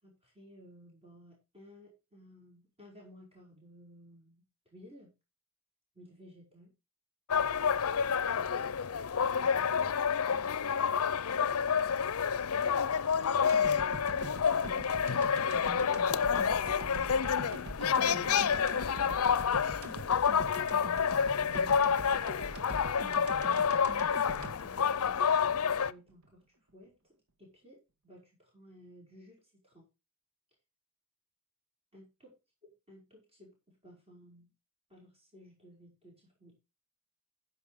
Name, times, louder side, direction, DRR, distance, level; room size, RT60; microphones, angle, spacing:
voice 1, 0.0-4.4 4.7-5.1 5.9-6.7 9.1-9.9 10.3-11.5 13.5-14.9 15.5-20.7 21.4-22.1 24.6-26.4 26.7-27.0 27.4-29.8 31.9-32.3 32.9-33.5 33.8-34.5 34.9-36.5, equal, 30° right, -3 dB, 5.4 m, -56 dB
sound 1, 7.3-25.9, left 7 dB, 80° left, 0.6 m, -29 dB
sound 2, 13.5-25.7 26.1-26.2, right 1 dB, 90° right, 1.6 m, -44 dB
14.5 x 5.9 x 4.9 m, 0.27 s
head